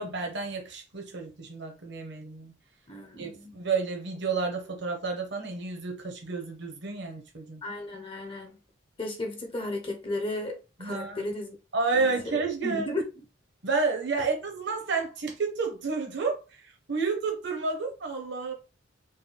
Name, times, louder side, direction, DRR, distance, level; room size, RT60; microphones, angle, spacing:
voice 1, 0.0-2.5 3.2-7.6 10.8-11.3 11.7-12.9 13.6-18.5, right 4 dB, 60° right, 1.1 m, -30 dB
voice 2, 2.9-3.6 7.6-8.6 9.0-11.6 11.9-13.2, left 2 dB, 25° left, 0.8 m, -35 dB
4.0 x 2.2 x 4.0 m
head